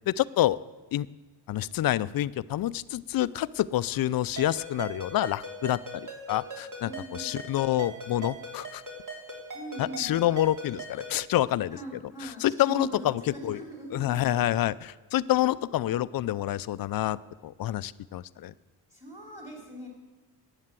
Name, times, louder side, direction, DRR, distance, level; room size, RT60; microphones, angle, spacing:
voice 1, 0.1-0.6 0.9-1.1 1.5-8.8 9.8-11.8 12.2-13.6 13.9-17.2 17.4-18.5, left 13 dB, 55° left, 18 dB, 0.5 m, -27 dB
Ringtone, 4.4-11.2, right 1 dB, 45° right, 3.2 m, -41 dB
voice 2, 6.8-7.4 9.5-10.2 11.7-14.6 18.9-19.9, right 1 dB, 5° right, -1 dB, 3.2 m, -41 dB
11.0 x 9.1 x 7.5 m, 1.2 s
cardioid pair, 80°, 43 cm